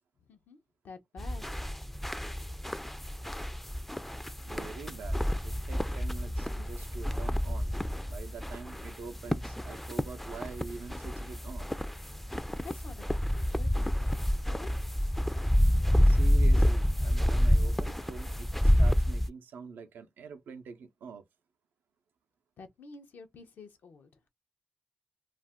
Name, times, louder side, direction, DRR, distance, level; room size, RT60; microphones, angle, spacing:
voice 1, 0.3-0.6 0.8-1.4 12.6-14.7 22.6-24.1, left 4 dB, 75° left, 0.7 m, -49 dB
sound 1, 1.2-19.3, equal, 5° left, 0.3 m, -28 dB
voice 2, 4.5-7.7 8.1-11.8 16.1-21.2, right 5 dB, 90° right, 0.5 m, -45 dB
2.4 x 2.1 x 3.4 m
cardioid pair, 60°, 3 cm